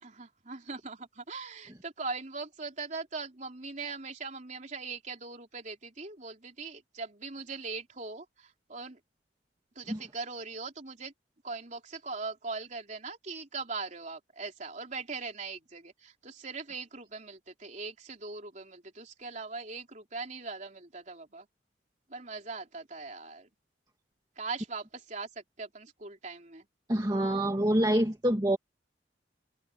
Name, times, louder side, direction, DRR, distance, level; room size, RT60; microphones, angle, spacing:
voice 1, 0.0-9.0 9.8-11.1 11.4-21.5 22.1-23.5 24.4-26.7, right 4 dB, 40° right, 3.7 m, -40 dB
voice 2, 26.9-28.6, right 1 dB, 20° right, 1.7 m, -26 dB
head